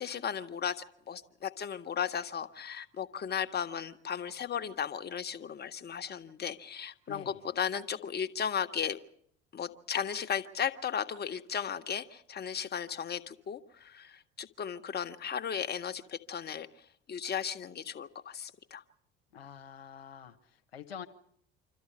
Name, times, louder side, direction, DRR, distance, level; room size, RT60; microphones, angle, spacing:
voice 1, 0.0-9.0 9.5-16.7 17.1-18.8, left 8 dB, 35° left, 1.5 m, -35 dB
voice 2, 7.1-7.4 19.3-21.1, left 8 dB, 85° left, 1.1 m, -46 dB
26.0 x 13.5 x 9.8 m
figure-of-eight pair, 60°, 30 cm